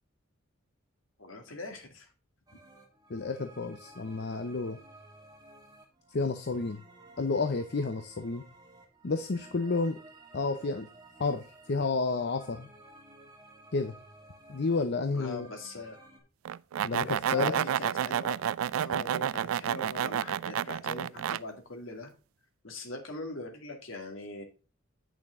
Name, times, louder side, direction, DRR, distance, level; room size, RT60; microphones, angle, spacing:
voice 1, 1.2-2.1 15.1-16.0 17.3-18.4 18.8-22.1 22.6-24.4, left 2 dB, 70° left, 3 dB, 2.3 m, -41 dB
sound 1, 2.5-16.2, right 2 dB, 20° right, 2.5 m, -55 dB
voice 2, 3.1-4.8 6.1-6.8 7.2-8.5 9.0-10.0 10.3-10.9 11.2-12.7 13.7-13.9 14.5-15.5 16.8-17.5, left 3 dB, 55° left, 8 dB, 0.7 m, -30 dB
sound 2, 16.5-21.4, right 9 dB, 75° right, 0.3 m, -30 dB
8.8 x 6.2 x 3.6 m, 0.35 s
head